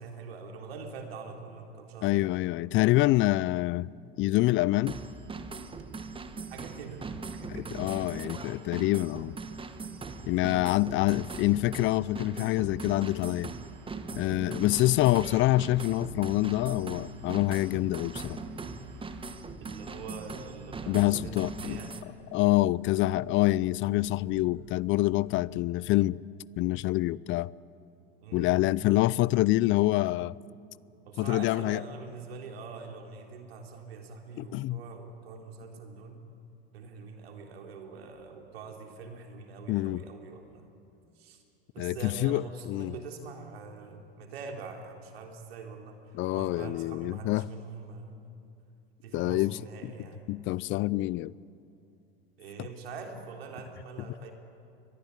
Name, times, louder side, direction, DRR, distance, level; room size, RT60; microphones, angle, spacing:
voice 1, 0.0-2.3 6.5-7.0 7.3-8.4 10.2-11.1 14.4-15.1 19.6-22.0 28.2-29.1 31.1-36.2 36.7-40.7 41.2-41.4 41.7-48.3 49.0-50.3 52.4-54.3, right 4 dB, 80° right, 3.8 m, -44 dB
voice 2, 2.0-3.9 4.2-5.0 7.5-9.3 10.3-13.5 14.1-18.4 20.9-21.8 22.3-26.2 26.6-27.5 28.3-30.4 31.2-31.8 34.4-34.8 39.7-40.0 41.8-42.9 46.1-47.5 49.1-49.9 50.3-51.3, left 17 dB, 40° left, 0.5 m, -26 dB
sound 1, 4.8-22.0, right 4 dB, 15° right, 1.5 m, -40 dB
sound 2, 4.9-19.3, right 7 dB, 50° right, 2.2 m, -56 dB
sound 3, 12.4-25.4, left 4 dB, 85° left, 2.2 m, -53 dB
24.0 x 20.5 x 9.7 m
hypercardioid pair, 100°, 30 cm